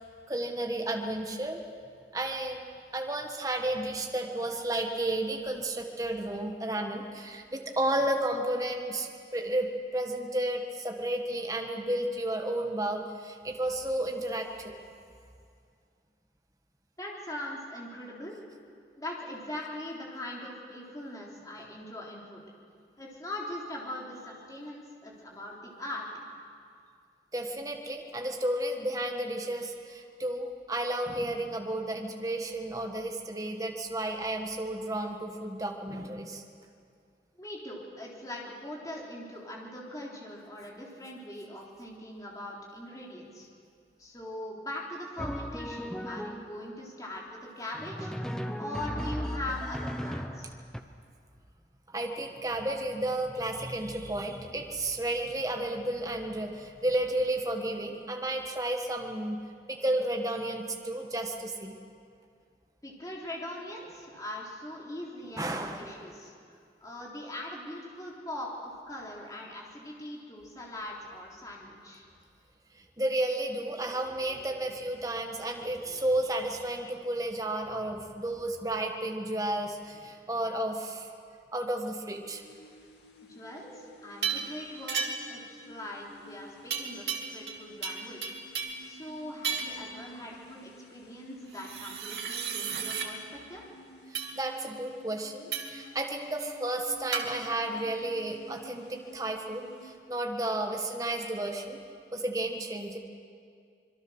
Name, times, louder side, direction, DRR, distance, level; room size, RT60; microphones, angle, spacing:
voice 1, 0.3-1.6 2.1-2.6 2.9-9.7 9.9-14.7 27.3-36.4 51.9-59.4 59.7-61.8 65.4-65.9 73.0-81.1 81.5-82.4 94.1-101.8 102.1-103.0, right 1 dB, 20° right, 2 dB, 1.7 m, -32 dB
voice 2, 17.0-18.3 19.0-22.4 23.0-26.1 37.4-43.5 44.0-50.5 62.8-72.0 83.2-88.4 88.9-93.6, left 1 dB, 20° left, -3 dB, 3.6 m, -41 dB
Drum, 45.2-46.7 47.7-50.8, equal, 5° left, 0.9 m, -36 dB
sound 1, 82.3-100.0, equal, 75° left, 2.5 m, -52 dB
sound 2, 84.2-84.5 84.9-85.4 86.7-87.6 87.8-88.8 89.4-89.8 91.5-93.1 94.1-94.3 95.5-95.8 97.1-97.3, right 6 dB, 75° right, 2.5 m, -33 dB
26.0 x 22.0 x 6.4 m, 2.3 s
head